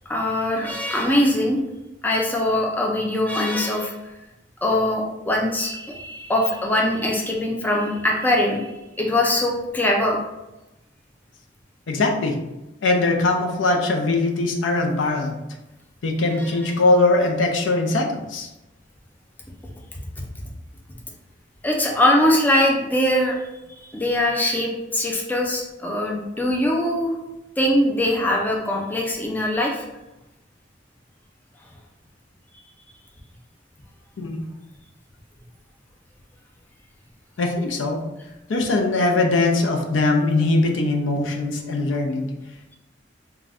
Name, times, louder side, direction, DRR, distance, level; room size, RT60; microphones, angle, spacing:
voice 1, 0.1-1.6 2.0-3.9 4.6-8.7 9.0-10.2 16.4-16.5 21.6-23.4 23.9-27.2 27.6-29.9, left 1 dB, 10° left, -1 dB, 0.4 m, -22 dB
voice 2, 11.9-12.3 12.8-15.4 16.0-18.5 34.2-34.5 37.4-38.0 38.5-42.3, left 2 dB, 90° left, 2 dB, 0.5 m, -21 dB
2.5 x 2.2 x 3.3 m, 0.98 s
head